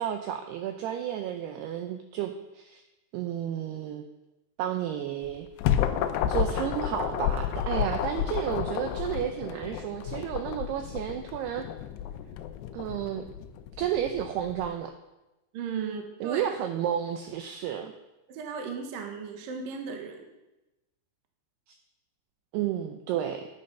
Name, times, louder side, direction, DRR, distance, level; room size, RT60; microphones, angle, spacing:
voice 1, 0.0-2.8 3.1-4.1 4.6-5.5 6.3-11.7 12.7-13.2 13.8-14.9 16.2-17.9 22.5-23.5, right 10 dB, 90° right, 6 dB, 2.3 m, -32 dB
sound 1, 5.2-14.7, left 10 dB, 80° left, 2.4 m, -31 dB
voice 2, 15.5-16.6 18.3-20.3, right 5 dB, 65° right, 3 dB, 2.4 m, -36 dB
11.5 x 8.8 x 5.5 m, 0.99 s
omnidirectional pair, 5.5 m